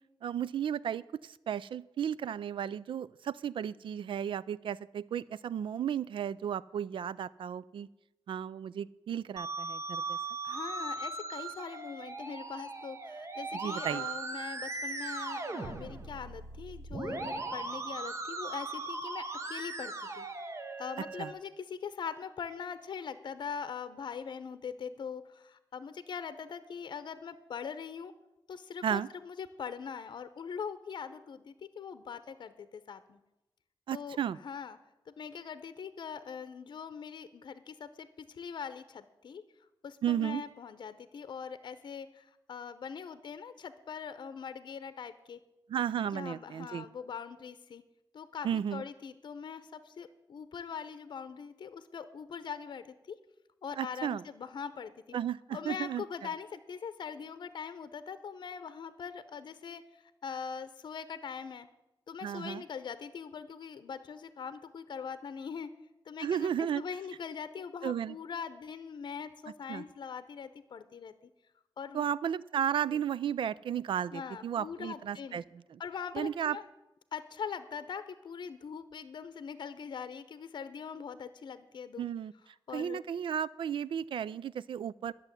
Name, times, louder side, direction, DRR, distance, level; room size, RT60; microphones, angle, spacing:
voice 1, 0.2-7.9 8.3-10.2 13.5-14.1 21.2-21.3 28.8-29.1 33.9-34.4 40.0-40.4 45.7-46.8 48.4-48.8 53.8-54.2 55.1-56.0 62.2-62.6 66.2-66.8 67.8-68.1 69.7-69.8 71.9-75.4 75.7-75.8 76.1-76.6 82.0-82.3 82.7-85.1, right 9 dB, 70° right, 20 dB, 0.4 m, -34 dB
Musical instrument, 9.4-21.3, right 3 dB, 35° right, 1.0 m, -39 dB
voice 2, 10.4-20.3 20.8-28.1 28.5-33.2 33.9-34.8 35.1-39.4 39.8-45.4 46.1-47.8 48.1-53.2 53.6-54.9 55.5-61.7 62.1-65.7 66.1-71.1 71.8-72.0 72.9-73.0 74.1-75.4 75.8-76.6 77.1-82.1 82.7-83.0, left 6 dB, 55° left, 12 dB, 0.7 m, -42 dB
11.5 x 6.8 x 9.6 m, 0.94 s
wide cardioid pair, 160°, 9 cm